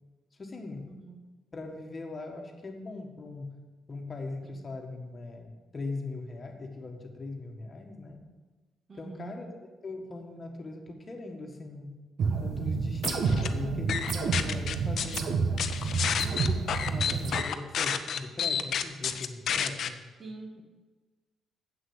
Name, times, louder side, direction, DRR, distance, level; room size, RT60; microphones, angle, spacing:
voice 1, 0.4-1.0 1.5-3.6 3.9-8.2 9.0-9.5 9.8-12.0 12.4-15.7 16.1-20.0, left 3 dB, 35° left, 2 dB, 1.5 m, -40 dB
voice 2, 8.9-9.4 20.2-20.6, right 3 dB, 40° right, 3 dB, 1.6 m, -44 dB
sound 1, 12.2-17.4, right 4 dB, 65° right, 1.1 m, -29 dB
sound 2, 13.0-13.5 13.9-15.2 15.6-19.9, left 8 dB, 65° left, 0.6 m, -30 dB
7.6 x 6.2 x 7.9 m, 1.2 s
cardioid pair, 90°, 0 cm